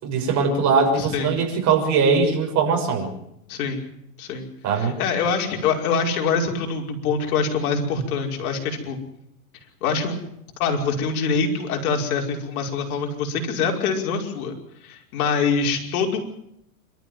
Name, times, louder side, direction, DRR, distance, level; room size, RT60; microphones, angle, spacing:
voice 1, 0.0-3.1 4.6-5.0, right 5 dB, 40° right, 2 dB, 6.5 m, -21 dB
voice 2, 1.0-1.3 3.5-3.8 4.2-4.5 4.8-9.0 9.8-10.2 10.6-14.5 14.8-16.2, left 5 dB, 65° left, 2 dB, 5.5 m, -24 dB
26.5 x 13.5 x 9.3 m, 0.78 s
supercardioid pair, 130°, 45 cm